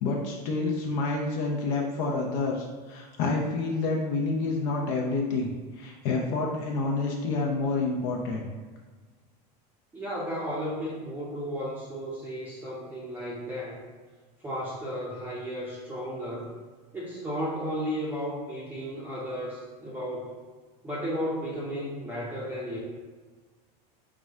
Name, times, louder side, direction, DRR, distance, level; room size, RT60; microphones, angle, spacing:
voice 1, 0.0-5.5 5.8-8.5, left 3 dB, 55° left, -1 dB, 0.7 m, -28 dB
voice 2, 9.9-13.8 14.4-16.5 16.9-20.3 20.8-22.8, equal, 10° right, -7 dB, 0.6 m, -34 dB
4.8 x 2.2 x 3.6 m, 1.4 s
supercardioid pair, 135°, 21 cm